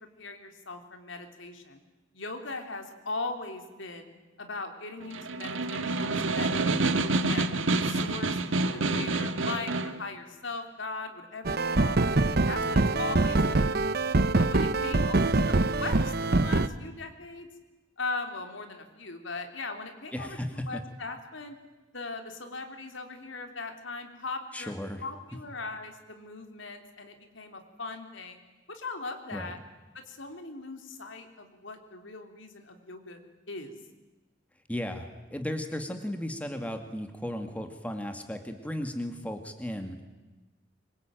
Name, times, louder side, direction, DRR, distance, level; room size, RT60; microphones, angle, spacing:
voice 1, 0.2-1.8 2.1-4.1 4.4-7.5 7.8-8.4 8.7-12.1 12.5-13.9 14.4-17.5 18.0-21.6 21.9-24.7 25.0-28.4 28.7-29.6 29.9-33.2 33.5-33.8, left 3 dB, 75° left, 5 dB, 3.5 m, -39 dB
Snare drum, 5.0-10.0, right 3 dB, 80° right, 1.6 m, -28 dB
sound 1, 11.4-16.7, right 2 dB, 50° right, 0.9 m, -24 dB
voice 2, 20.1-20.8 24.5-25.0 29.3-29.5 34.7-40.0, left 1 dB, 5° left, 6 dB, 2.1 m, -35 dB
25.0 x 23.5 x 9.2 m, 1.2 s
head